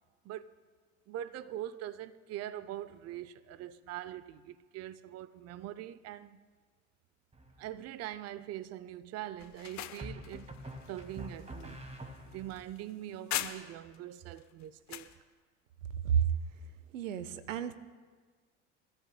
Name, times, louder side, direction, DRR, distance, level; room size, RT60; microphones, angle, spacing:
voice 1, 1.1-6.4 7.6-10.5 10.9-11.8 12.3-15.1, right 12 dB, 40° right, 0.6 m, -43 dB
sound 1, 7.3-7.9 10.0-12.6, right 1 dB, 15° right, 1.9 m, -46 dB
sound 2, 9.4-14.0 14.4-15.2, left 13 dB, 45° left, 0.9 m, -42 dB
voice 2, 16.9-17.7, right 8 dB, 85° right, 0.7 m, -30 dB
26.5 x 13.5 x 2.2 m
hypercardioid pair, 70°, 38 cm